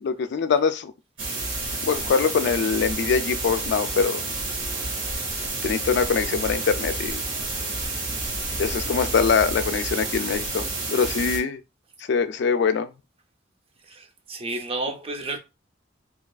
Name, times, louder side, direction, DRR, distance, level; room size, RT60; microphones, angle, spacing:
voice 1, 0.0-0.9 1.8-4.2 5.6-7.2 8.6-11.6 12.0-12.9, left 5 dB, 65° left, 0.3 m, -23 dB
sound 1, 1.2-11.4, right 2 dB, 80° right, 1.2 m, -30 dB
voice 2, 13.9-15.4, right 2 dB, 30° right, 0.5 m, -31 dB
2.8 x 2.4 x 2.3 m
head